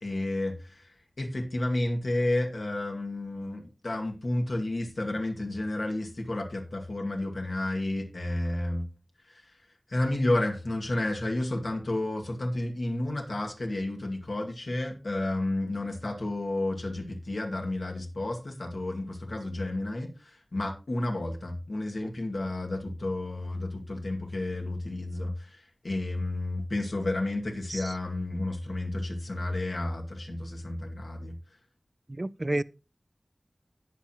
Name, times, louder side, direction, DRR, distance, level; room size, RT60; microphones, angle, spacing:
voice 1, 0.0-8.9 9.3-9.6 9.9-31.4, left 1 dB, 80° left, 2.2 m, -31 dB
voice 2, 32.1-32.6, right 1 dB, 40° right, 0.4 m, -31 dB
17.0 x 6.0 x 3.0 m
wide cardioid pair, 50°, 0 cm